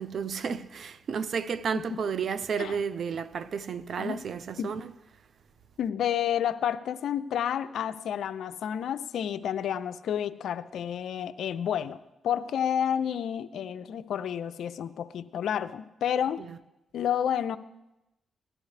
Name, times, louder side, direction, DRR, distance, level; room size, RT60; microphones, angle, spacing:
voice 1, 0.0-4.9 16.4-16.6, right 6 dB, 65° right, 0.5 m, -32 dB
voice 2, 5.8-12.0 12.2-16.4 16.9-17.6, left 9 dB, 80° left, 0.4 m, -30 dB
17.0 x 12.0 x 3.3 m
cardioid pair, 60°, 0 cm